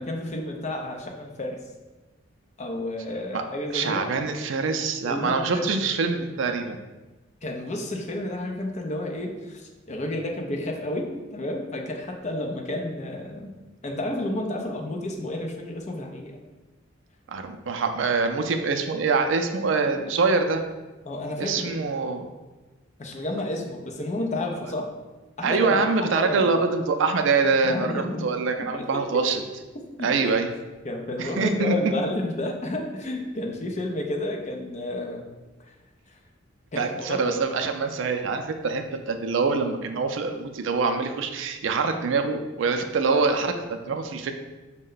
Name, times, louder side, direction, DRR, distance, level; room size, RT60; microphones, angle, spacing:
voice 1, 0.0-1.6 2.6-4.1 5.0-5.8 7.4-13.5 13.8-16.4 21.1-21.8 23.0-24.9 25.4-25.8 26.2-26.5 27.6-28.3 28.6-28.9 30.0-30.4 30.8-35.2 36.7-37.4, left 1 dB, 35° left, 1 dB, 0.5 m, -31 dB
voice 2, 3.7-6.8 17.3-20.6 21.4-22.3 25.4-29.4 30.0-30.5 31.2-32.0 36.8-44.3, right 4 dB, 70° right, 6 dB, 0.4 m, -25 dB
5.2 x 2.2 x 3.8 m, 1.2 s
head